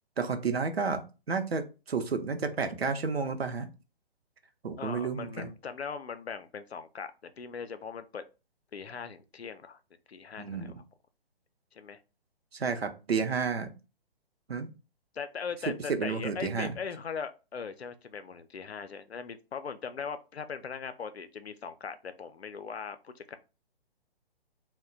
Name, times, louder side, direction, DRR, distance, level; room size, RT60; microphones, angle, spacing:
voice 1, 0.2-1.0 1.3-3.7 4.6-5.5 10.4-10.7 12.5-13.7 14.5-14.7 16.0-16.7, right 5 dB, 80° right, 0.6 m, -31 dB
voice 2, 4.8-8.2 8.7-9.8 10.1-10.8 11.7-12.0 15.1-23.4, left 6 dB, 85° left, 0.5 m, -40 dB
2.3 x 2.1 x 3.8 m
figure-of-eight pair, 135°, 31 cm